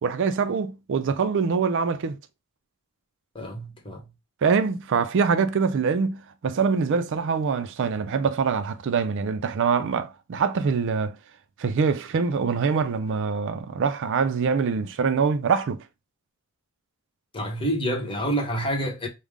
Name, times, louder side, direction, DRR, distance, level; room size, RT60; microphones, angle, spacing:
voice 1, 0.0-2.2 4.4-11.2 11.6-15.8, right 5 dB, 60° right, 0.4 m, -24 dB
voice 2, 3.3-4.1 17.3-19.1, right 1 dB, 25° left, 1.0 m, -28 dB
4.9 x 2.1 x 3.5 m
head